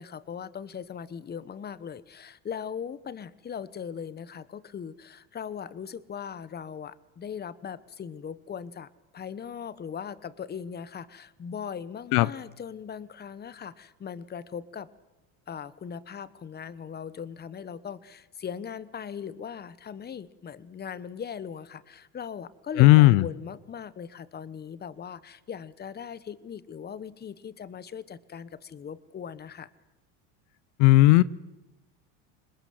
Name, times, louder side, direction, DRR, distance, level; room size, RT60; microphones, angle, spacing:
voice 1, 0.0-14.9 15.5-29.7, left 7 dB, 25° left, 1.1 m, -39 dB
voice 2, 22.8-23.3 30.8-31.2, left 18 dB, 75° left, 0.8 m, -16 dB
26.5 x 21.0 x 7.7 m
supercardioid pair, 110°, 39 cm